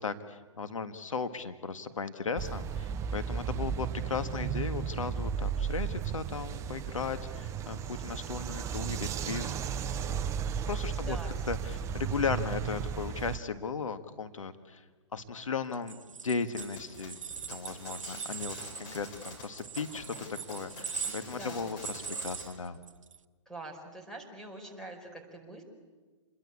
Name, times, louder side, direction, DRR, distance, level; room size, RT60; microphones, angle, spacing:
voice 1, 0.0-9.5 9.8-10.0 10.7-11.2 11.5-14.8 15.1-16.0 16.2-17.2 17.5-22.8, left 5 dB, 85° left, 9 dB, 1.7 m, -36 dB
sound 1, 2.4-13.4, right 7 dB, 20° right, 0.7 m, -34 dB
voice 2, 11.1-11.5 21.3-21.7 23.4-25.6, right 2 dB, 5° left, 1 dB, 4.9 m, -44 dB
sound 2, 15.7-23.2, right 6 dB, 80° right, 1.1 m, -41 dB
sound 3, 16.6-22.5, left 3 dB, 35° left, 7.5 m, -47 dB
29.0 x 22.0 x 8.6 m, 1.4 s
hypercardioid pair, 135°, 16 cm